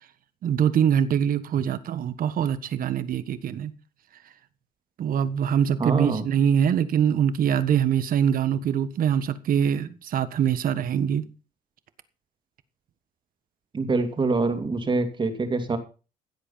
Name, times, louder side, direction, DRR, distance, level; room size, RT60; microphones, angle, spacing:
voice 1, 0.4-3.7 5.0-11.2, right 8 dB, 55° right, 1.5 m, -23 dB
voice 2, 5.8-6.2 13.7-15.8, right 3 dB, 30° right, 2.6 m, -25 dB
16.0 x 8.1 x 5.7 m
cardioid pair, 110°, 17 cm